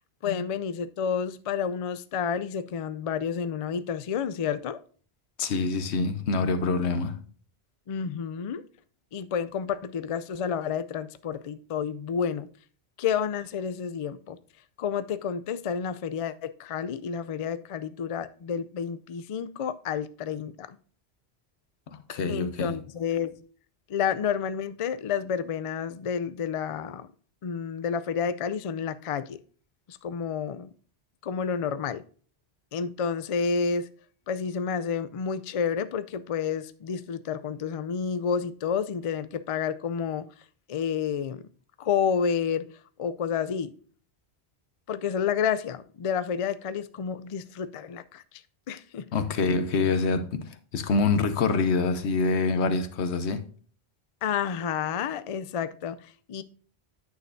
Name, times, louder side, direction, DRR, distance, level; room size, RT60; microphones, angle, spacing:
voice 1, 0.2-4.8 7.9-8.6 9.1-12.5 13.0-14.4 14.8-20.8 22.3-23.4 23.9-27.1 27.4-29.4 29.9-30.7 31.2-32.0 32.7-33.9 34.3-40.3 40.7-41.4 41.8-42.7 43.0-43.7 44.9-48.2 48.7-49.1 54.2-56.4, left 7 dB, 55° left, 0.4 m, -30 dB
voice 2, 5.4-7.2 21.9-22.8 49.1-53.4, left 4 dB, 90° left, 1.1 m, -26 dB
9.3 x 6.4 x 2.6 m
omnidirectional pair, 1.1 m